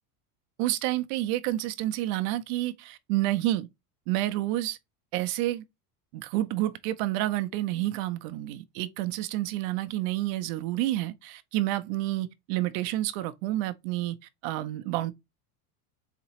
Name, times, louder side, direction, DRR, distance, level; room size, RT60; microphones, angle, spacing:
voice 1, 0.6-3.7 4.1-4.8 5.1-5.6 6.1-14.2 14.4-15.1, right 15 dB, 45° right, 0.5 m, -29 dB
4.1 x 2.9 x 2.7 m
supercardioid pair, 165°, 46 cm